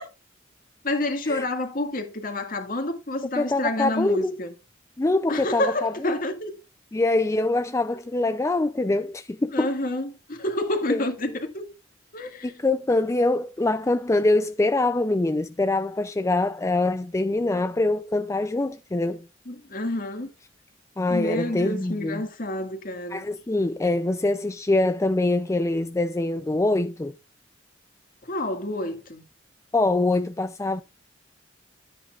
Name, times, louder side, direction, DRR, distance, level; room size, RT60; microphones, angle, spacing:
voice 1, 0.8-4.5 5.3-6.6 9.5-11.6 12.1-12.5 19.5-20.3 21.1-23.2 28.2-29.2, left 1 dB, 45° left, 2.0 m, -28 dB
voice 2, 3.4-4.3 5.0-6.1 6.9-9.7 10.9-11.0 12.4-19.3 21.0-22.2 23.1-27.1 29.7-30.8, left 2 dB, 15° left, 0.4 m, -24 dB
13.0 x 8.7 x 2.4 m
head